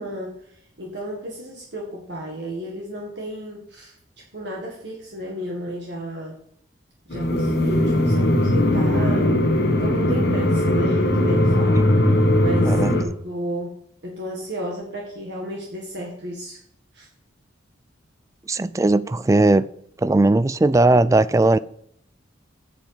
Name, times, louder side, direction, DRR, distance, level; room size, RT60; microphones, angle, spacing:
voice 1, 0.0-3.9 4.3-6.4 7.1-9.3 9.8-13.8 14.0-16.6 16.9-17.1, right 1 dB, 60° right, 1.8 m, -33 dB
sound 1, 7.1-13.0, left 1 dB, 55° left, 1.4 m, -19 dB
voice 2, 12.6-12.9 18.5-19.7 20.0-21.6, right 2 dB, 15° right, 0.3 m, -18 dB
8.8 x 7.6 x 5.0 m
head